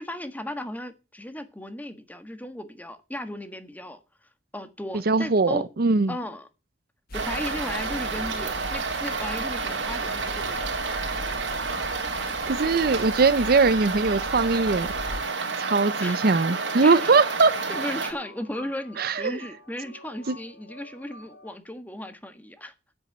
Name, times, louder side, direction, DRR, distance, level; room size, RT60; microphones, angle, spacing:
voice 1, 0.0-4.0 4.5-5.7 6.1-6.5 7.1-10.7 16.0-16.3 16.8-17.2 17.7-22.7, left 1 dB, 10° left, 1.5 m, -36 dB
voice 2, 5.1-6.1 11.7-11.8 12.5-14.9 15.6-17.5 19.0-19.4 20.3-20.4, right 4 dB, 55° right, 0.6 m, -21 dB
sound 1, 7.1-15.3, left 2 dB, 55° left, 1.4 m, -40 dB
sound 2, 7.1-18.1, right 4 dB, 80° right, 3.1 m, -30 dB
sound 3, 7.8-21.5, left 2 dB, 80° left, 3.8 m, -48 dB
9.7 x 8.3 x 7.7 m
head